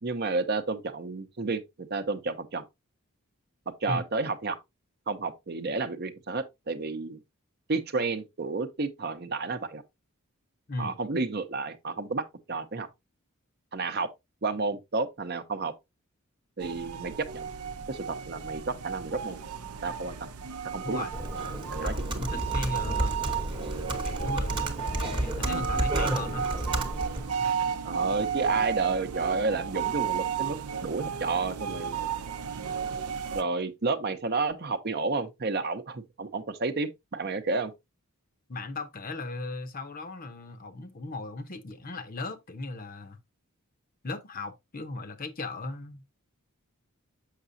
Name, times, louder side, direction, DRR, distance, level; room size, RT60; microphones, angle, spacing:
voice 1, 0.0-2.6 3.8-4.6 5.1-7.2 7.7-9.8 10.8-12.9 13.7-14.1 14.4-15.7 16.6-17.5 17.9-19.4 19.8-20.2 20.7-21.1 21.7-22.3 27.8-32.0 33.3-37.7, right 3 dB, 45° right, 0.7 m, -31 dB
sound 1, 16.6-33.4, right 7 dB, 85° right, 0.6 m, -33 dB
Computer keyboard, 21.1-27.3, right 1 dB, 20° right, 1.0 m, -31 dB
voice 2, 21.8-23.2 23.9-26.4 38.5-43.2 44.0-46.0, left 2 dB, 40° left, 0.7 m, -37 dB
6.6 x 5.9 x 2.6 m
head